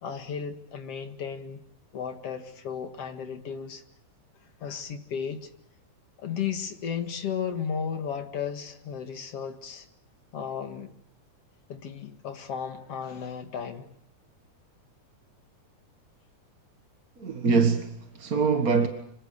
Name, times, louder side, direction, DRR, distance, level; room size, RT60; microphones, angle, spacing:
voice 1, 0.0-1.6 1.9-3.8 4.6-5.5 6.2-9.9 10.3-10.9 11.7-13.9, left 7 dB, 50° left, 2.8 m, -34 dB
voice 2, 17.2-18.9, right 5 dB, 40° right, 1.5 m, -24 dB
26.5 x 25.5 x 6.7 m
omnidirectional pair, 3.6 m